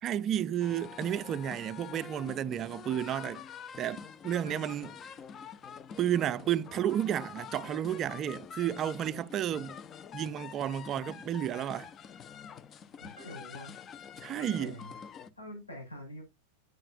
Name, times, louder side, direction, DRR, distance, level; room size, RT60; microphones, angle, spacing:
voice 1, 0.0-3.4 3.8-4.9 6.0-9.8 10.1-11.9 14.2-14.8, right 10 dB, 30° right, 0.4 m, -32 dB
sound 1, 0.6-15.3, left 8 dB, 25° left, 0.5 m, -46 dB
voice 2, 13.0-13.7 14.3-15.0 15.4-16.2, left 1 dB, 80° left, 5.9 m, -45 dB
8.8 x 7.6 x 2.5 m
figure-of-eight pair, 90°, 0 cm